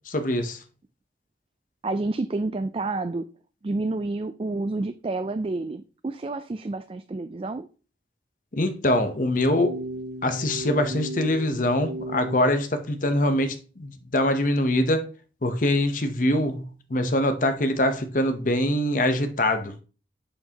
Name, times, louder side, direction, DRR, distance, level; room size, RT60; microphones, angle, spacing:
voice 1, 0.1-0.6 8.5-9.8 10.2-15.1 15.4-19.7, left 1 dB, 45° left, 0.8 m, -24 dB
voice 2, 1.8-3.3 3.6-7.7, right 2 dB, 30° right, 0.3 m, -29 dB
sound 1, 9.2-12.5, right 1 dB, 70° right, 0.8 m, -34 dB
7.9 x 6.7 x 2.9 m
head